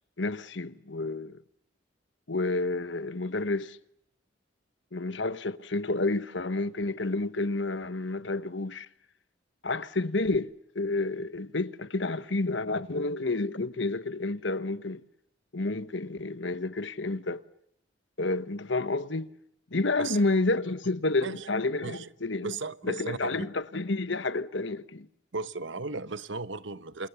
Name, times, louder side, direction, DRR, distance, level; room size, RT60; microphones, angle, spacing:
voice 1, 0.2-1.4 2.3-3.8 4.9-8.9 9.6-15.0 15.5-17.4 18.2-19.3 19.7-22.5 22.8-25.1, left 2 dB, 70° left, 1.2 m, -30 dB
voice 2, 22.4-23.5 25.3-27.1, right 3 dB, 70° right, 1.1 m, -36 dB
29.0 x 28.5 x 7.0 m
head